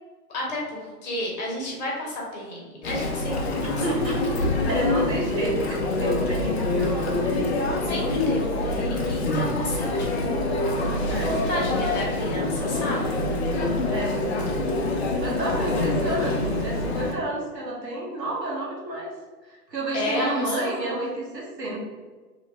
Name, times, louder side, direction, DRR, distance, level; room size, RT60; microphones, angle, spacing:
voice 1, 0.3-3.8 5.6-5.8 7.8-10.4 11.1-13.2 19.9-20.9, left 1 dB, 25° left, -3 dB, 0.9 m, -32 dB
Chatter, 2.8-17.1, left 2 dB, 45° left, 0.5 m, -25 dB
voice 2, 3.6-7.1 11.0-11.4 13.9-14.5 15.2-19.1 19.5-21.8, right 1 dB, 85° right, -4 dB, 1.4 m, -30 dB
3.1 x 3.0 x 3.0 m, 1.4 s
hypercardioid pair, 130°, 49 cm